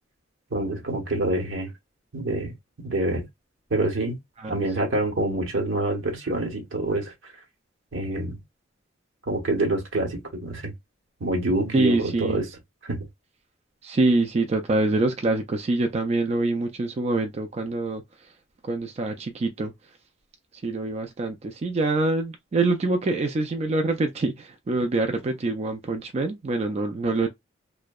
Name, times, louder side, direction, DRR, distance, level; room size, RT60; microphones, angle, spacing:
voice 1, 0.5-1.7 2.1-3.2 3.7-4.2 4.5-7.3 7.9-8.4 9.3-10.7 11.2-12.5 12.8-13.0, right 2 dB, 75° right, 0.9 m, -26 dB
voice 2, 11.7-12.4 13.8-18.3 18.6-19.7 20.6-27.3, right 2 dB, 30° right, 0.3 m, -25 dB
2.6 x 2.1 x 2.2 m
head